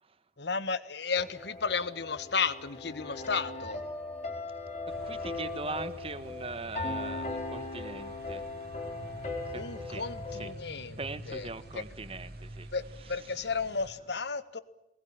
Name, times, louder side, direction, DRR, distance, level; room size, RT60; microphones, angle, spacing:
voice 1, 0.4-3.8 9.5-11.0 11.3-11.5 11.7-11.8 12.7-14.6, left 5 dB, 65° left, 14 dB, 1.4 m, -33 dB
sound 1, 1.1-10.5, left 3 dB, 40° left, 4.5 m, -39 dB
sound 2, 4.9-13.9, right 1 dB, 60° right, 3.0 m, -47 dB
voice 2, 5.0-8.4 9.4-10.1 10.3-10.5 11.0-12.7 13.3-13.4, right 3 dB, 30° right, 12 dB, 1.5 m, -41 dB
23.5 x 20.5 x 8.9 m, 0.89 s
head